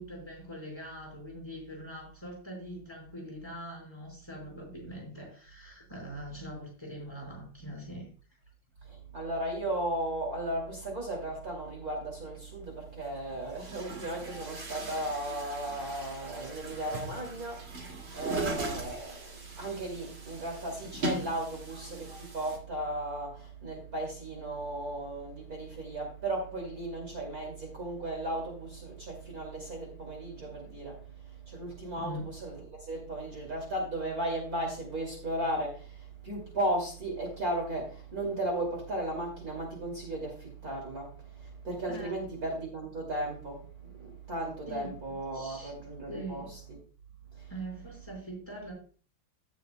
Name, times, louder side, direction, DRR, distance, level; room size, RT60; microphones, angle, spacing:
voice 1, 0.0-8.1 18.3-18.6 32.0-32.3 41.9-42.3 44.7-45.7 46.1-46.6 47.5-48.7, right 1 dB, 10° left, 4.6 m, -42 dB
voice 2, 8.9-46.8 47.3-47.6, right 1 dB, 40° right, 2.9 m, -36 dB
Chatter / Gurgling / Tap, 12.6-12.7 13.5-22.6, right 2 dB, 65° right, 3.1 m, -40 dB
16.5 x 6.7 x 2.2 m
omnidirectional pair, 2.3 m